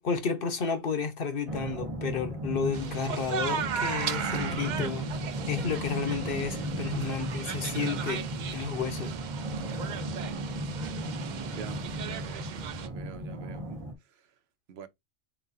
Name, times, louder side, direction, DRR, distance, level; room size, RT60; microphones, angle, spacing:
voice 1, 0.0-5.1 5.5-8.2 8.5-9.1, left 5 dB, 60° left, 1.0 m, -32 dB
sound 1, 1.5-13.9, right 1 dB, 35° right, 1.0 m, -35 dB
sound 2, 2.7-12.9, right 8 dB, 55° right, 0.5 m, -37 dB
voice 2, 11.5-13.8 14.1-14.2 14.7-14.9, right 7 dB, 75° right, 0.9 m, -47 dB
4.0 x 3.8 x 2.6 m
omnidirectional pair, 1.1 m